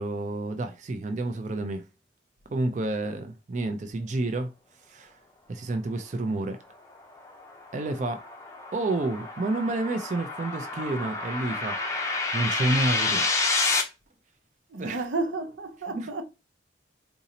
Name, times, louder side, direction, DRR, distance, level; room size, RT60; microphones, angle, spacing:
voice 1, 0.0-1.8 2.5-4.5 4.9-5.2 5.5-6.6 7.7-8.2 8.7-13.3 14.8-15.0 15.9-16.1, right 2 dB, 40° right, 0.4 m, -30 dB
sound 1, 6.9-13.8, left 3 dB, 15° left, 0.5 m, -29 dB
voice 2, 14.7-16.2, right 3 dB, 85° right, 0.6 m, -32 dB
3.9 x 2.6 x 2.8 m
head